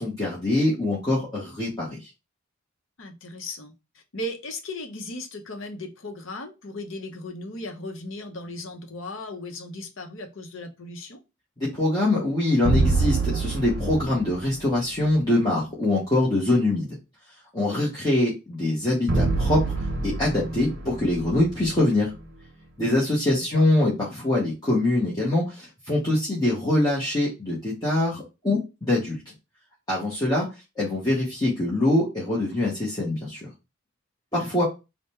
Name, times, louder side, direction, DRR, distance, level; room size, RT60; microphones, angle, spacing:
voice 1, 0.0-2.1 11.6-17.0 17.5-22.1 22.8-29.2 29.9-30.5 30.8-33.5 34.3-34.6, left 1 dB, 20° left, -6 dB, 0.9 m, -24 dB
voice 2, 3.0-11.2 23.3-23.6 34.4-34.5, left 1 dB, 70° left, 4 dB, 0.8 m, -37 dB
sound 1, 12.6-14.8 19.1-22.3, right 3 dB, 50° right, 0.7 m, -26 dB
3.6 x 2.2 x 4.2 m, 0.27 s
head